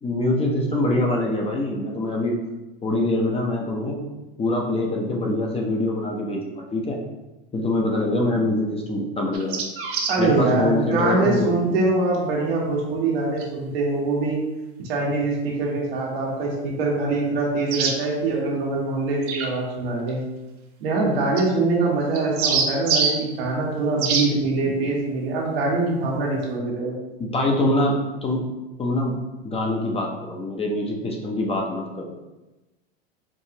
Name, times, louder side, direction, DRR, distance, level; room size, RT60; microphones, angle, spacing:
voice 1, 0.0-2.4 2.8-4.0 4.4-7.0 7.5-9.5 10.2-11.9 27.2-28.5 28.8-29.2 29.4-32.2, left 1 dB, 20° left, 0 dB, 0.6 m, -24 dB
sound 1, 9.3-10.2 13.4-13.5 17.7-18.0 19.2-19.5 21.4-21.5 22.1-23.2 24.0-24.3, right 5 dB, 45° right, 0.7 m, -24 dB
voice 2, 10.1-14.4 14.9-20.2 20.8-27.0, right 3 dB, 75° right, -2 dB, 1.3 m, -23 dB
4.6 x 2.4 x 2.9 m, 1.0 s
hypercardioid pair, 105°, 30 cm